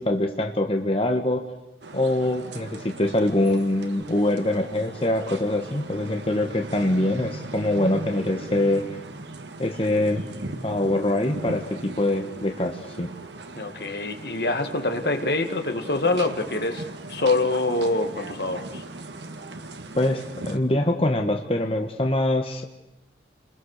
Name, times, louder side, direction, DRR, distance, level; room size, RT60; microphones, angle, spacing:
voice 1, 0.0-1.4 1.9-8.8 9.6-10.2 10.6-13.1 19.9-22.6, left 1 dB, 30° left, 3 dB, 1.4 m, -24 dB
sound 1, 1.8-20.6, right 2 dB, 80° right, 1.9 m, -38 dB
voice 2, 13.6-16.8 17.1-18.8, left 2 dB, 60° left, 6 dB, 2.0 m, -25 dB
29.5 x 21.5 x 6.7 m, 0.92 s
head